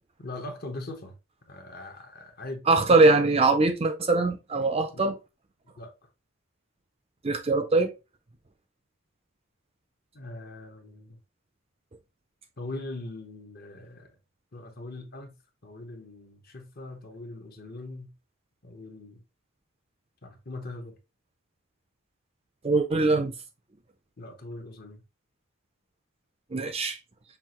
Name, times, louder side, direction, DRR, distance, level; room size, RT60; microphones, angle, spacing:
voice 1, 0.2-1.2 1.5-3.4 4.9-5.1 5.8-5.9 10.1-11.2 12.6-14.1 14.5-15.4 15.6-18.1 18.6-19.2 20.2-21.0 24.2-25.0, left 2 dB, 40° left, 0.9 m, -41 dB
voice 2, 2.7-5.1 7.2-7.9 22.6-23.3 26.5-27.0, right 3 dB, 25° right, 0.4 m, -22 dB
5.6 x 2.4 x 3.0 m
head